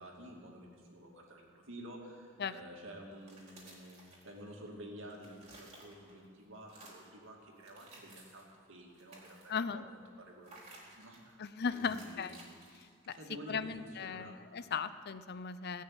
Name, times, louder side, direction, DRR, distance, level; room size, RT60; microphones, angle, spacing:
voice 1, 0.0-11.4 11.7-12.4 13.2-14.4, right 1 dB, 65° right, -1 dB, 2.7 m, -51 dB
sound 1, 3.1-4.7 5.0-6.3 6.6-7.2 7.6-8.5 8.9-9.7 10.4-11.3 11.7-13.4, right 2 dB, 30° right, 4.2 m, -57 dB
voice 2, 9.5-9.8 11.4-12.4 12.8-13.2 13.5-15.8, left 6 dB, 50° left, 13 dB, 0.6 m, -37 dB
18.5 x 6.6 x 9.0 m, 2.1 s
head